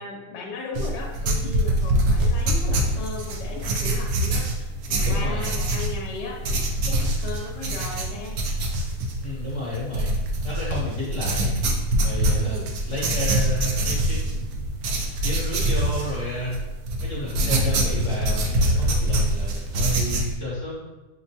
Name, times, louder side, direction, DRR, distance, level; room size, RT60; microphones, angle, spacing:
voice 1, 0.0-8.4 12.3-12.7, left 4 dB, 70° left, -1 dB, 1.2 m, -36 dB
sound 1, 0.8-20.3, right 1 dB, 75° right, 0.8 m, -24 dB
voice 2, 4.9-5.5 9.2-10.1 10.4-11.5 12.0-14.6 14.9-16.6 17.0-20.7, left 1 dB, 50° left, -7 dB, 1.0 m, -32 dB
5.9 x 2.1 x 2.7 m, 1.1 s
omnidirectional pair, 2.1 m